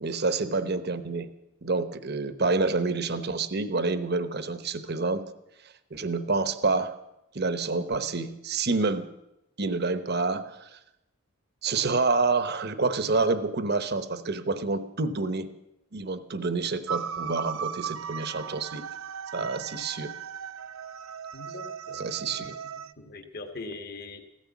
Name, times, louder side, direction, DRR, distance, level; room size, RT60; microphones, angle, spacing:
voice 1, 0.0-1.3 1.6-5.2 5.9-6.9 7.3-9.1 9.6-10.8 11.6-15.5 15.9-18.9 19.3-20.1 21.9-22.5, right 3 dB, 50° right, 12 dB, 0.9 m, -28 dB
sound 1, 16.9-22.9, right 7 dB, 75° right, 0.6 m, -37 dB
voice 2, 21.3-22.0 22.8-24.2, left 3 dB, 45° left, 5 dB, 1.6 m, -41 dB
15.0 x 13.5 x 7.2 m, 0.89 s
head